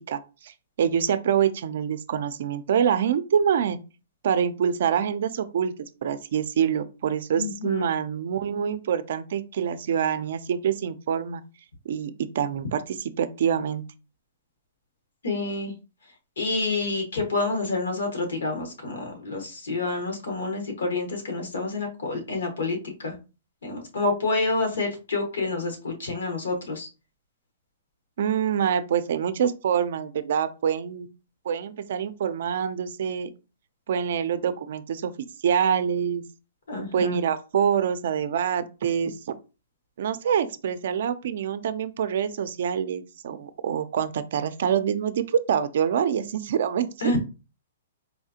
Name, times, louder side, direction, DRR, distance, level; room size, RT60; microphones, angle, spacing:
voice 1, 0.1-3.8 4.2-5.7 6.0-11.4 11.9-13.8 28.2-31.1 31.5-33.3 33.9-36.2 36.9-39.3 40.0-47.1, right 8 dB, 65° right, 0.4 m, -26 dB
voice 2, 7.4-7.9 15.2-15.7 16.4-23.1 23.6-26.9 36.7-37.2 47.0-47.2, left 3 dB, 90° left, 1.4 m, -28 dB
4.2 x 2.4 x 2.7 m
hypercardioid pair, 150°, 0 cm